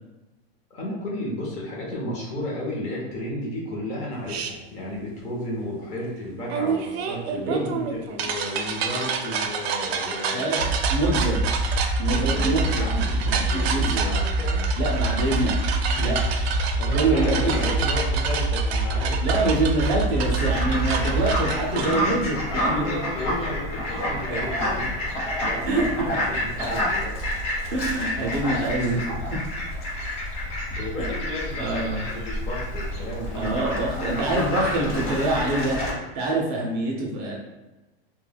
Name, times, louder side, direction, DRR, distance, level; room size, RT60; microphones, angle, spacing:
voice 1, 0.7-10.5 12.0-14.7 15.9-19.2 22.5-24.9 25.4-27.2 30.0-30.5 30.8-33.5 34.0-34.3, left 1 dB, 25° left, -4 dB, 0.6 m, -33 dB
sound 1, 4.3-4.5 6.5-21.9, right 6 dB, 85° right, 0.5 m, -29 dB
voice 2, 10.3-11.4 12.0-12.9 13.5-14.1 14.8-15.6 16.0-16.2 16.9-17.7 19.2-23.0 24.0-24.7 25.7-25.9 26.3-26.4 27.7-29.4 29.7-29.8 31.6-32.0 33.4-35.8 36.1-37.4, right 2 dB, 35° right, -2 dB, 0.5 m, -25 dB
sound 2, 10.6-21.4, right 1 dB, 80° left, 1.0 m, -25 dB
Fowl, 20.2-35.9, left 1 dB, 40° left, 1.0 m, -29 dB
2.2 x 2.1 x 3.3 m, 1.1 s
supercardioid pair, 150°, 31 cm